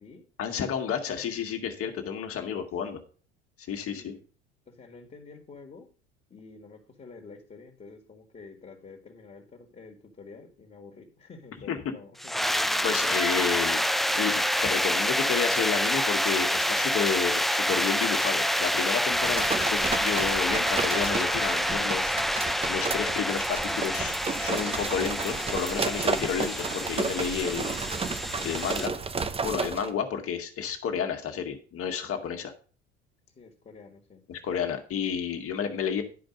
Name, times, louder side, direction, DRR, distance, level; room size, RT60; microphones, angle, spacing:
voice 1, 0.4-3.0 3.7-4.1 11.7-11.8 12.8-13.8 14.2-14.3 14.6-22.1 22.7-27.8 28.4-28.9 29.4-32.5 34.3-36.0, left 7 dB, 40° left, 5 dB, 1.8 m, -31 dB
voice 2, 3.9-4.3 4.7-5.9 6.3-13.1 33.4-34.2, left 4 dB, 25° left, 2 dB, 2.0 m, -48 dB
sound 1, 12.2-28.9, equal, ahead, 0.3 m, -27 dB
sound 2, 19.1-29.9, right 4 dB, 15° right, 0.8 m, -32 dB
11.0 x 5.1 x 5.2 m, 0.40 s
figure-of-eight pair, 70°, 33 cm